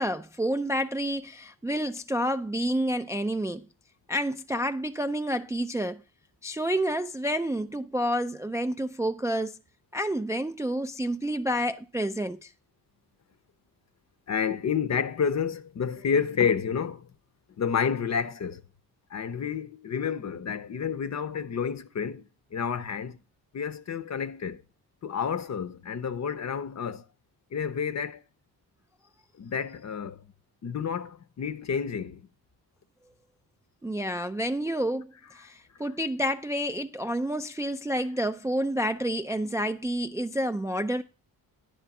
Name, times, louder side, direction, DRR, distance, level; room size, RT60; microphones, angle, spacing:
voice 1, 0.0-3.7 4.1-6.0 6.4-9.6 9.9-12.5 33.8-41.0, equal, 10° right, 0.3 m, -29 dB
voice 2, 14.3-17.1 17.6-18.6 19.1-22.2 22.5-23.2 23.5-24.6 25.0-27.0 27.5-28.2 29.4-30.2 30.6-32.2 35.2-35.5, left 7 dB, 45° left, 0.7 m, -30 dB
10.0 x 3.4 x 5.9 m
cardioid pair, 75°, 38 cm